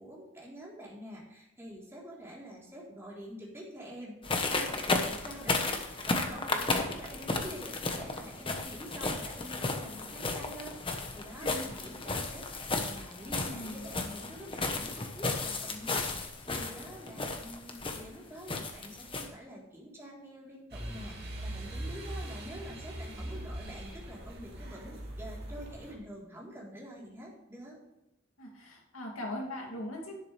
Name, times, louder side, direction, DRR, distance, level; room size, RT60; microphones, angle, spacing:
voice 1, 0.0-27.8, equal, 10° right, -5 dB, 3.6 m, -47 dB
sound 1, 4.2-19.3, left 3 dB, 25° left, 1.1 m, -34 dB
voice 2, 11.4-11.8 13.4-13.8 28.4-30.2, left 1 dB, 85° left, 0 dB, 2.7 m, -40 dB
sound 2, 20.7-25.9, right 1 dB, 50° right, 2.7 m, -41 dB
11.5 x 10.5 x 3.4 m, 0.91 s
head